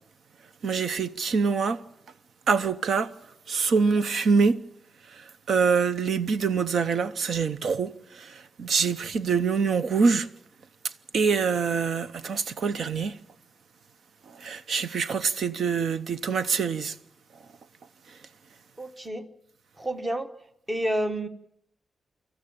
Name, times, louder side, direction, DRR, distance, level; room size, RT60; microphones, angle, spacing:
voice 1, 0.6-1.8 2.5-3.1 3.5-4.6 5.1-10.3 11.1-13.2 14.3-17.0, right 5 dB, 70° right, 0.8 m, -25 dB
voice 2, 18.8-19.3 19.8-20.3 20.7-21.3, right 1 dB, 15° right, 1.1 m, -29 dB
25.5 x 14.0 x 8.8 m
wide cardioid pair, 160°, 0 cm